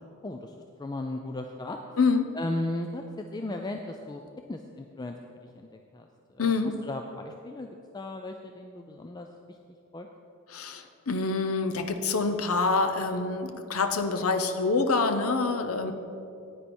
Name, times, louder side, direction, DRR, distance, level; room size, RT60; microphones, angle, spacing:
voice 1, 0.2-1.8 2.3-4.2 4.5-5.2 5.5-5.7 5.9-9.6 9.9-10.1, left 2 dB, 20° left, 4 dB, 0.3 m, -36 dB
voice 2, 2.0-2.3 6.4-6.8 10.5-15.9, left 3 dB, 80° left, 7 dB, 0.7 m, -26 dB
9.9 x 9.4 x 4.3 m, 2.6 s
head